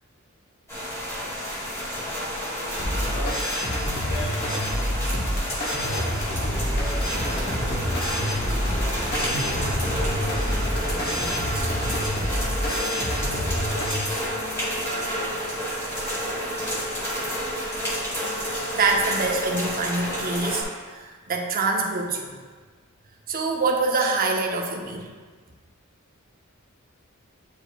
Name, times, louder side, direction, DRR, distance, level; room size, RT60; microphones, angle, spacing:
sound 1, 0.7-20.6, equal, 15° left, 1.8 m, -30 dB
sound 2, 2.8-14.0, equal, 50° left, 1.1 m, -27 dB
voice 1, 3.1-3.4 4.0-4.8 5.6-6.4 6.9-7.4 7.7-8.4 8.7-10.2 10.8-14.0 14.5-17.1, left 1 dB, 70° left, -9 dB, 1.5 m, -42 dB
sound 3, 6.4-11.4, equal, 35° left, 1.7 m, -33 dB
voice 2, 18.7-22.3 23.3-25.1, right 3 dB, 45° right, 1 dB, 0.7 m, -25 dB
8.6 x 5.0 x 2.3 m, 1.5 s
head